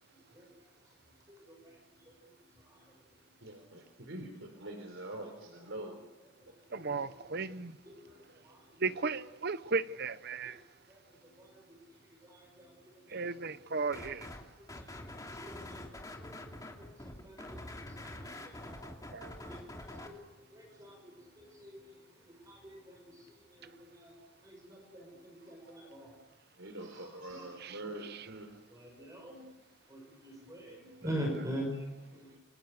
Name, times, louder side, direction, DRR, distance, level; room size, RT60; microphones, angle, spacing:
voice 1, 1.3-1.7 2.1-2.2 2.7-2.8 5.8-6.0 6.8-7.1 7.8-8.1 8.4-8.6 10.9-11.0 11.4-11.6 12.2-13.2 14.6-15.0 15.4-16.9 17.2-18.9 19.1-19.2 19.5-20.2 20.5-21.9 22.3-24.1 24.4-26.1 27.2-27.4 27.8-27.9 28.7-29.4 29.9-32.4, equal, 15° right, 6.0 m, -44 dB
voice 2, 3.4-5.9 26.6-28.5, right 1 dB, 70° right, 4.0 m, -44 dB
voice 3, 6.7-7.7 8.8-10.6 13.1-14.3 19.1-19.3, right 4 dB, 50° right, 1.0 m, -35 dB
sound 1, 13.9-14.4 14.7-20.1, left 1 dB, 15° left, 2.8 m, -46 dB
29.0 x 25.0 x 6.7 m
head